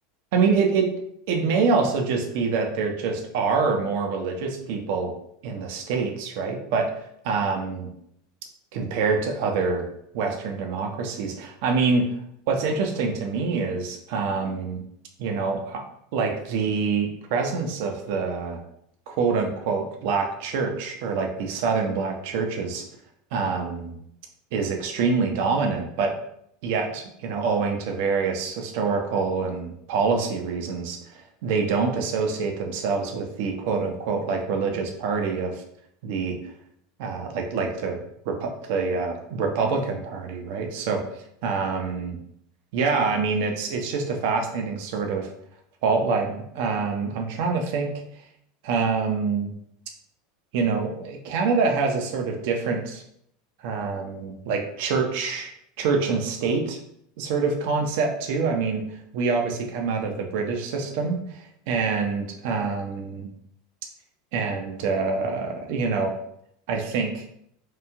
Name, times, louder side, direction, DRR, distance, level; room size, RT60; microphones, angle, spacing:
voice 1, 0.3-0.9 1.3-5.1 5.4-6.9 7.2-7.9 8.7-9.9 10.1-12.1 12.5-14.8 15.2-15.8 16.1-18.6 19.1-22.8 23.3-24.0 24.5-26.1 26.6-35.6 36.0-36.4 37.0-38.0 38.3-41.0 41.4-42.2 42.7-45.3 45.8-47.9 48.6-49.5 50.5-53.0 53.6-55.5 55.8-56.8 57.2-58.8 59.1-63.3 64.3-66.1 66.7-67.2, right 4 dB, 55° right, 3 dB, 0.4 m, -26 dB
3.0 x 2.3 x 2.3 m, 0.72 s
figure-of-eight pair, 80°, 0 cm